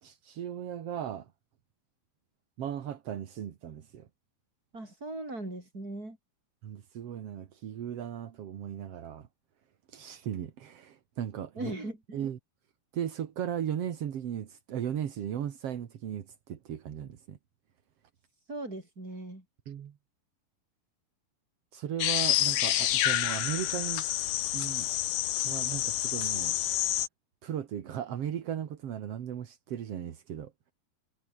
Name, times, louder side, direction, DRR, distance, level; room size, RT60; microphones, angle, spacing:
voice 1, 0.0-1.3 2.6-4.1 6.6-9.3 9.9-11.7 12.1-12.4 12.9-17.4 19.7-19.9 21.7-24.1 24.5-24.9 25.4-26.6 27.4-30.5, right 9 dB, 55° right, 1.9 m, -36 dB
voice 2, 4.7-6.2 11.5-12.2 18.5-19.4, right 2 dB, 20° right, 8.0 m, -39 dB
sound 1, 22.0-27.1, left 13 dB, 75° left, 3.0 m, -28 dB
omnidirectional pair, 4.5 m